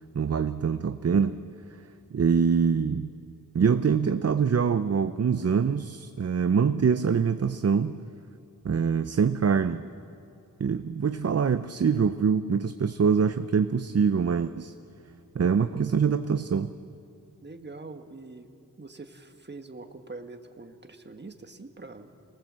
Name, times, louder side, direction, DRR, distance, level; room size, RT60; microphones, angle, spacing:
voice 1, 0.1-1.4 2.1-3.1 3.5-8.0 8.6-9.9 10.6-14.7 15.3-16.7, right 6 dB, 45° right, 11 dB, 0.6 m, -24 dB
voice 2, 17.4-18.5 18.8-22.1, right 3 dB, 30° right, 6 dB, 1.5 m, -44 dB
25.5 x 19.0 x 7.5 m, 2.6 s
wide cardioid pair, 70°, 34 cm